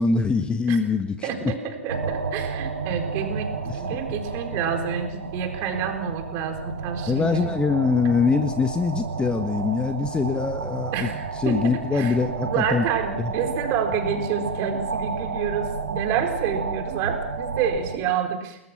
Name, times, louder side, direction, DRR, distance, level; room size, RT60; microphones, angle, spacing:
voice 1, 0.0-1.3 3.7-3.8 7.1-11.1 11.4-12.8 13.2-13.3, left 4 dB, 15° left, 8 dB, 1.5 m, -23 dB
voice 2, 1.2-7.5 10.9-12.2 12.4-18.6, right 7 dB, 40° right, 5 dB, 4.2 m, -28 dB
sound 1, 1.9-18.0, right 5 dB, 80° right, 2.9 m, -31 dB
29.5 x 20.5 x 6.1 m, 0.87 s
figure-of-eight pair, 110°, 7 cm